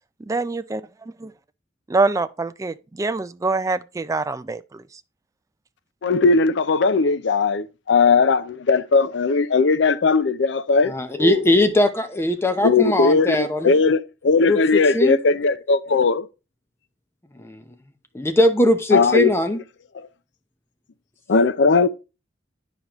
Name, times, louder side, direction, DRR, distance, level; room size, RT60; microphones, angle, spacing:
voice 1, 0.3-0.8 1.9-4.6, right 3 dB, 20° right, 0.3 m, -24 dB
voice 2, 6.0-11.7 12.6-16.3 18.9-19.3 19.9-20.1 21.3-21.9, left 4 dB, 70° left, 0.5 m, -18 dB
voice 3, 10.9-13.7 14.4-14.6 14.9-15.2 17.4-17.6 18.1-19.6, left 1 dB, 15° left, 0.7 m, -20 dB
9.6 x 5.1 x 3.0 m
head